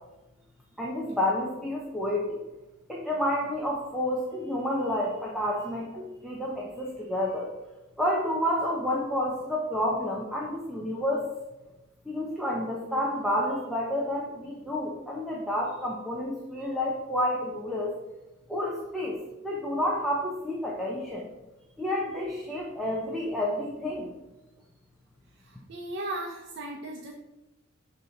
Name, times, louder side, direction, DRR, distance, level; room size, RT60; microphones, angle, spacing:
voice 1, 0.8-2.4 2.9-7.5 8.0-11.3 12.0-17.9 18.5-19.2 19.4-21.3 21.8-24.1, left 1 dB, ahead, -4 dB, 0.8 m, -29 dB
voice 2, 25.4-27.1, right 2 dB, 55° right, 0 dB, 0.6 m, -36 dB
6.6 x 2.9 x 5.8 m, 0.99 s
head